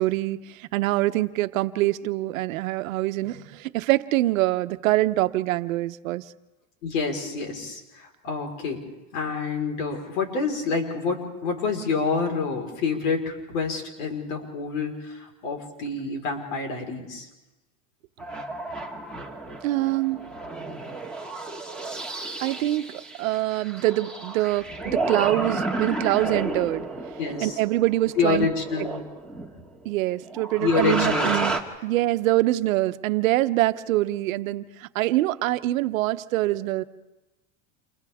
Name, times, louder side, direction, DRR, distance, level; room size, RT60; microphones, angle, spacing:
voice 1, 0.0-6.3 19.6-20.3 22.4-26.9 27.4-28.5 29.8-31.6 31.8-36.8, right 17 dB, 90° right, 11 dB, 0.9 m, -24 dB
voice 2, 6.8-8.8 9.1-17.3 27.2-27.6 28.2-29.0 30.6-31.4, left 4 dB, 85° left, 3 dB, 4.6 m, -27 dB
sound 1, 18.2-29.8 30.3-31.6, right 3 dB, ahead, 1.9 m, -32 dB
29.5 x 29.0 x 3.6 m, 1.1 s
supercardioid pair, 130°, 39 cm